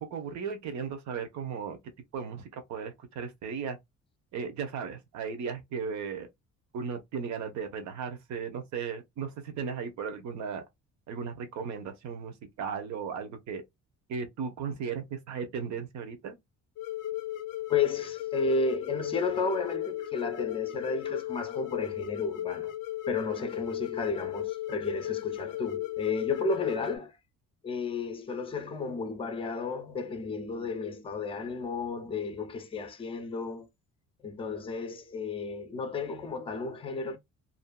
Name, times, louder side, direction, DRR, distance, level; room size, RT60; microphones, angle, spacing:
voice 1, 0.0-1.8 2.1-3.8 4.3-6.3 6.7-10.6 11.1-13.6 14.1-16.3, right 6 dB, 65° right, 0.9 m, -36 dB
sound 1, 16.8-27.0, left 14 dB, 80° left, 0.5 m, -35 dB
voice 2, 17.7-22.7 23.1-27.2 27.6-33.7 34.2-37.2, left 4 dB, 20° left, 0.5 m, -33 dB
2.7 x 2.4 x 2.2 m
cardioid pair, 155°, 31 cm